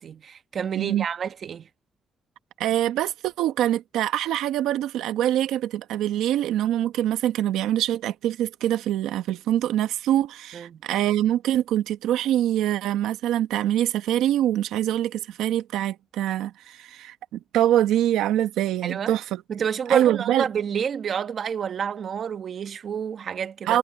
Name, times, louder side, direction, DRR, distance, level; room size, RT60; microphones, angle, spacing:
voice 1, 0.0-1.7 10.5-10.8 18.8-19.2 19.5-23.8, right 7 dB, 55° right, 1.2 m, -29 dB
voice 2, 2.6-19.4 19.9-20.4 23.7-23.8, right 12 dB, 90° right, 1.0 m, -24 dB
cardioid pair, 90°, 0 cm